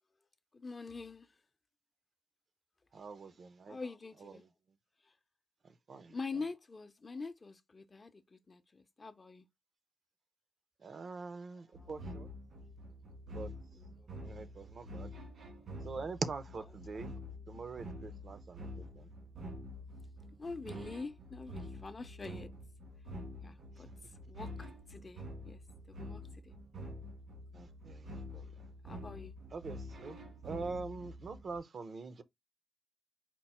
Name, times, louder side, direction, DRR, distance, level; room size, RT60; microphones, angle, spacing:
voice 1, 0.5-1.3 3.7-4.4 6.1-9.5 13.8-14.1 20.4-22.5 23.4-23.9 24.3-25.6 25.9-26.6 28.9-29.3, left 4 dB, 40° left, 0.5 m, -45 dB
voice 2, 2.9-3.8 4.2-4.5 5.6-6.4 10.8-12.3 13.3-13.5 14.2-15.1 15.8-17.1 17.5-19.1 23.7-23.9 27.5-28.7 29.5-32.2, right 4 dB, 60° right, 0.5 m, -44 dB
sound 1, 11.7-31.6, equal, 85° right, 1.6 m, -47 dB
4.4 x 2.0 x 4.2 m
cardioid pair, 70°, 0 cm